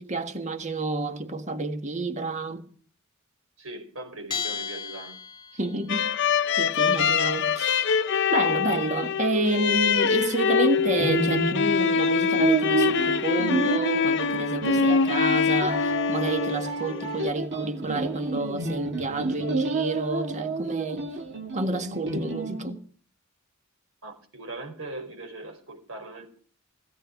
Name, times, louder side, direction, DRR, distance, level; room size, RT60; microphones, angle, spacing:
voice 1, 0.0-2.7 5.5-6.1 6.6-7.9 8.3-21.2 21.5-22.8, right 2 dB, 35° right, 1.6 m, -29 dB
voice 2, 3.6-5.2 24.0-26.4, right 2 dB, 80° right, 5.0 m, -40 dB
Bell, 4.3-5.9, left 7 dB, 25° left, 2.8 m, -34 dB
sound 1, 5.9-17.3, left 6 dB, 60° left, 0.7 m, -24 dB
sound 2, 10.8-22.7, right 3 dB, 60° right, 2.0 m, -30 dB
17.0 x 15.0 x 4.7 m
head